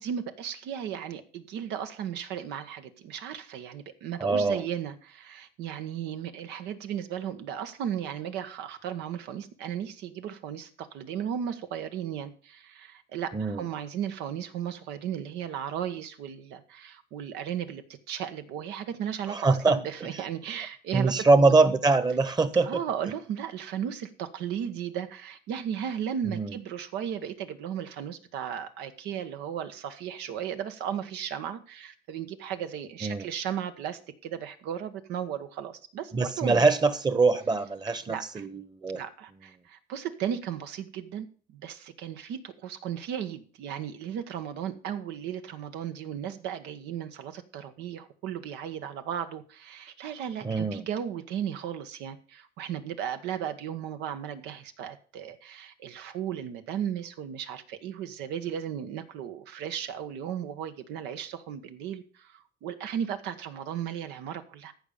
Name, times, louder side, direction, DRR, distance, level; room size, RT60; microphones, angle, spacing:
voice 1, 0.0-21.7 22.6-36.6 38.1-38.5 38.9-64.7, right 9 dB, 90° right, 9 dB, 1.3 m, -35 dB
voice 2, 4.2-4.6 13.3-13.7 19.3-19.8 20.9-22.8 26.3-26.5 33.0-33.3 36.1-39.0 50.4-50.9, right 3 dB, 25° right, 14 dB, 1.2 m, -23 dB
14.5 x 5.3 x 6.9 m, 0.42 s
cardioid pair, 110°, 17 cm